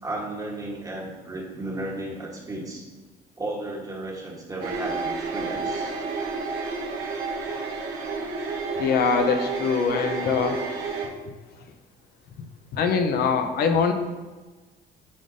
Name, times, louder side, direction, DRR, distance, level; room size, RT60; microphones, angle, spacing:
voice 1, 0.0-2.9 3.4-5.9, right 2 dB, 20° right, -3 dB, 1.2 m, -34 dB
sound 1, 4.6-11.1, right 4 dB, 85° right, 1.1 m, -30 dB
voice 2, 8.8-10.6 12.7-13.9, left 5 dB, 65° left, 6 dB, 0.7 m, -23 dB
9.7 x 3.8 x 2.6 m, 1.3 s
cardioid pair, 110°, 17 cm